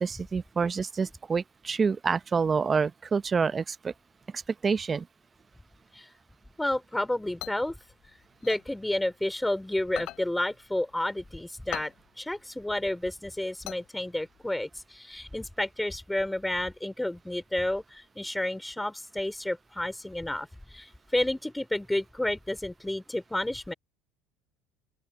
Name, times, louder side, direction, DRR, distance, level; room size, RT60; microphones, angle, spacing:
voice 1, 0.0-3.9 4.3-5.1, right 5 dB, 30° right, 0.8 m, -27 dB
voice 2, 6.6-7.8 8.4-23.7, left 1 dB, 5° left, 4.1 m, -31 dB
sound 1, 7.0-9.5 9.8-14.5, left 16 dB, 60° left, 7.1 m, -42 dB
open air
hypercardioid pair, 85°, 0 cm